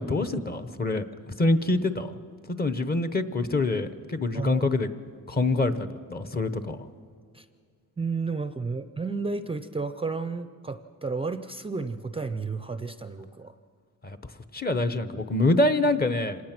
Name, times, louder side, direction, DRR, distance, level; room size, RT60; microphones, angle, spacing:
voice 1, 0.0-2.2 2.5-4.9 5.3-6.9 14.0-14.2 14.5-16.4, left 2 dB, 25° left, 10 dB, 0.9 m, -26 dB
voice 2, 4.3-4.7 7.3-7.5 8.0-13.5, right 4 dB, 15° right, 10 dB, 0.5 m, -32 dB
26.0 x 18.5 x 6.0 m, 2.2 s
cardioid pair, 130°, 36 cm